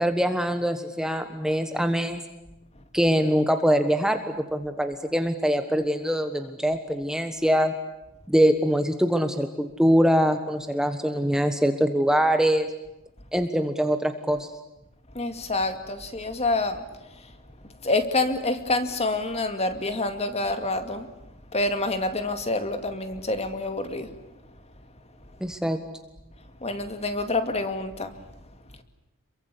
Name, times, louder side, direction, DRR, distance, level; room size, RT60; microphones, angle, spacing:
voice 1, 0.0-2.2 2.9-7.7 8.3-12.7 13.3-14.5 25.4-25.8, equal, 5° right, 7 dB, 1.3 m, -23 dB
voice 2, 15.1-16.8 17.8-21.1 21.5-24.1 26.6-28.1, left 2 dB, 30° left, 8 dB, 2.3 m, -27 dB
27.5 x 23.0 x 8.5 m, 0.96 s
head